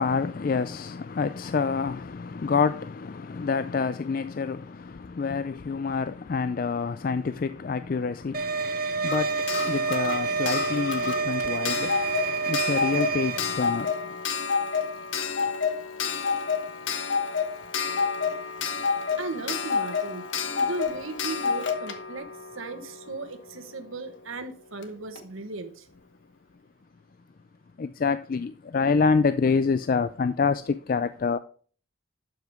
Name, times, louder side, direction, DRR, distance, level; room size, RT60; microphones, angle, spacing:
voice 1, 0.0-14.0 27.8-31.4, left 5 dB, 45° left, 0.4 m, -27 dB
sound 1, 8.3-13.4, right 4 dB, 45° right, 1.1 m, -28 dB
Clock, 9.1-23.7 24.8-24.9 25.1-25.2, left 5 dB, 65° left, 1.2 m, -29 dB
voice 2, 19.2-20.2 20.5-22.3 22.5-25.9, right 3 dB, 85° right, 1.3 m, -36 dB
12.0 x 5.8 x 3.6 m
head